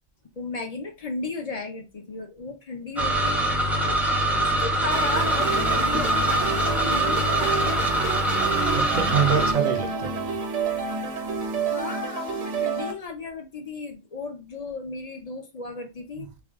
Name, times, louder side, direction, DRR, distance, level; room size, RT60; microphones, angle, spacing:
voice 1, 0.4-3.4 3.7-4.0 4.4-7.8 9.4-9.7 11.7-16.3, left 3 dB, 40° left, 0.6 m, -35 dB
sound 1, 3.0-9.5, right 1 dB, ahead, 0.4 m, -23 dB
sound 2, 4.9-12.9, right 5 dB, 70° right, 1.2 m, -29 dB
voice 2, 8.4-10.4 16.2-16.3, right 7 dB, 50° right, 0.6 m, -27 dB
3.4 x 2.3 x 3.5 m
omnidirectional pair, 1.3 m